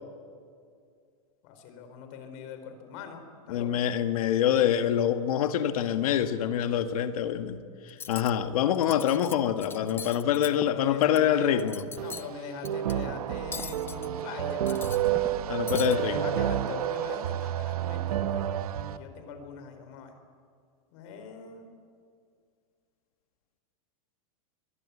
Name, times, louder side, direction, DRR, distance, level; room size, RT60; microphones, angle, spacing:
voice 1, 1.4-3.9 10.3-11.6 12.0-14.9 15.8-18.5 18.8-20.2 20.9-21.7, left 5 dB, 55° left, 7 dB, 4.4 m, -42 dB
voice 2, 3.5-11.8 15.5-16.2, left 10 dB, 75° left, 8 dB, 1.6 m, -26 dB
Cutlery silverware, 7.9-8.3 8.7-9.3 9.6-11.2 11.6-12.3 12.6-12.9 13.5-14.1 14.5-15.4 15.7-16.0, left 5 dB, 10° left, 0.6 m, -40 dB
sound 1, 12.0-19.0, right 11 dB, 90° right, 1.1 m, -30 dB
23.0 x 19.0 x 8.4 m, 2.2 s
supercardioid pair, 135°, 19 cm